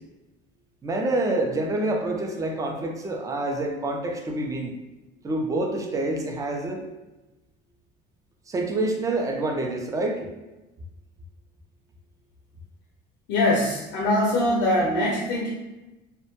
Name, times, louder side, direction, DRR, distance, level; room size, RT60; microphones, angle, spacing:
voice 1, 0.8-4.7 5.2-6.8 8.5-10.3, right 2 dB, 20° right, 2 dB, 0.3 m, -27 dB
voice 2, 13.3-15.5, left 1 dB, 90° left, -2 dB, 0.5 m, -22 dB
2.1 x 2.1 x 2.8 m, 1.0 s
cardioid pair, 125°, 19 cm